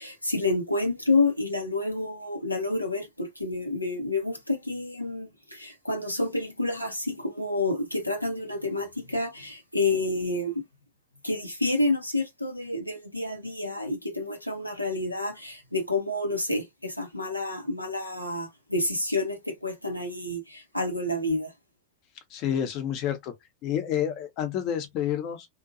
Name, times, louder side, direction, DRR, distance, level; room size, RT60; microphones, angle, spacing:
voice 1, 0.0-10.6 11.2-21.5, left 2 dB, 90° left, 0.6 m, -29 dB
voice 2, 22.3-23.3 23.6-25.5, left 9 dB, 40° left, 0.7 m, -29 dB
2.6 x 2.2 x 2.5 m
figure-of-eight pair, 90°, 0 cm